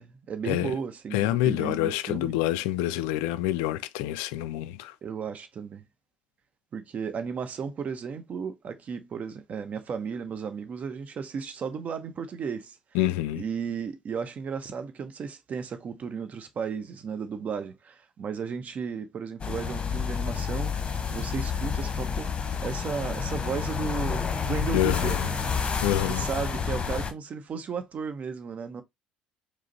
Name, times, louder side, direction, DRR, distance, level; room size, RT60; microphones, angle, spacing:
voice 1, 0.0-2.3 5.0-5.8 6.7-12.8 13.4-20.7 21.1-22.3 22.6-25.3 26.1-28.8, right 6 dB, 40° right, 0.8 m, -34 dB
voice 2, 1.1-4.9 12.9-13.4 24.7-25.3 25.8-26.3, left 14 dB, 70° left, 0.3 m, -27 dB
sound 1, 19.4-27.1, left 6 dB, 30° left, 0.9 m, -29 dB
5.0 x 2.0 x 4.0 m
hypercardioid pair, 60°, 4 cm